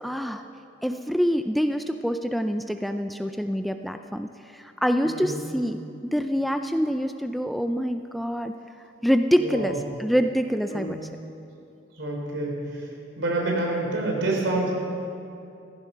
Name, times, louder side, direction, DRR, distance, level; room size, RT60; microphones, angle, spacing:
voice 1, 0.0-0.4 0.8-8.5 9.0-11.0, equal, ahead, 7 dB, 0.3 m, -26 dB
voice 2, 5.0-5.4 9.4-9.8 10.7-10.9 12.0-12.8 13.2-14.7, right 2 dB, 75° right, -1 dB, 3.6 m, -27 dB
15.5 x 14.5 x 5.6 m, 2.6 s
head